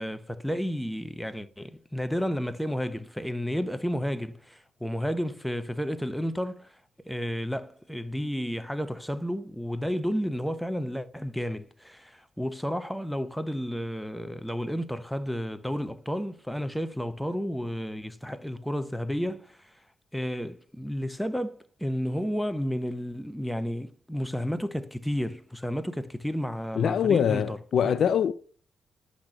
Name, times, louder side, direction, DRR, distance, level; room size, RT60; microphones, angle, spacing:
voice 1, 0.0-6.8 7.0-19.7 20.1-27.6 27.8-28.0, equal, ahead, 1.1 m, -32 dB
voice 2, 26.8-28.3, left 8 dB, 65° left, 0.4 m, -23 dB
10.0 x 6.2 x 6.7 m
hypercardioid pair, 45°, 0 cm